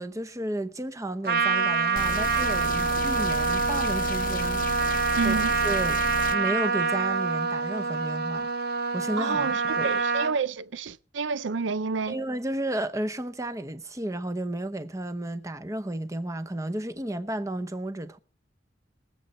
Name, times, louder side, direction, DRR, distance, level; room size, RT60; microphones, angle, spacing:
voice 1, 0.0-6.0 6.3-8.5 8.9-9.9 12.1-18.2, right 1 dB, 15° right, 0.8 m, -33 dB
Trumpet, 1.2-10.3, right 5 dB, 55° right, 1.3 m, -26 dB
sound 1, 2.0-6.4, left 4 dB, 50° left, 0.7 m, -33 dB
voice 2, 5.2-5.5 9.2-12.2, right 4 dB, 85° right, 0.5 m, -29 dB
22.5 x 7.9 x 4.3 m
head